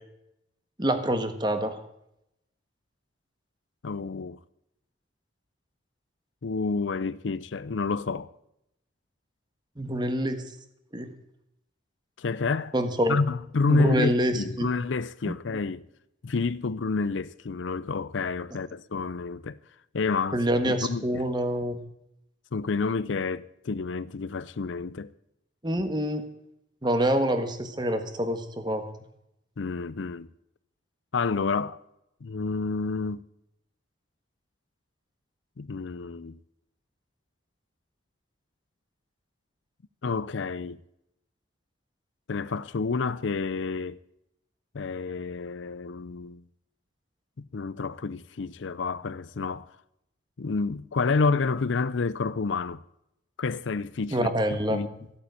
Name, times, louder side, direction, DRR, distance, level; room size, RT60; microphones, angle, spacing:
voice 1, 0.8-1.8 9.8-10.4 10.9-11.1 12.7-13.2 13.7-14.7 15.2-15.3 20.3-21.8 25.6-26.2 26.8-28.9 54.1-54.8, right 1 dB, 25° right, 1.5 m, -26 dB
voice 2, 3.8-4.4 6.4-8.3 12.2-12.7 13.1-15.9 16.2-19.6 19.9-21.2 22.5-25.1 29.6-30.3 31.1-31.8 32.2-33.2 35.6-36.4 40.0-40.8 42.3-44.0 44.7-46.4 47.4-49.7 50.4-52.8 53.4-55.0, left 4 dB, 75° left, 0.5 m, -29 dB
14.5 x 8.5 x 8.2 m
head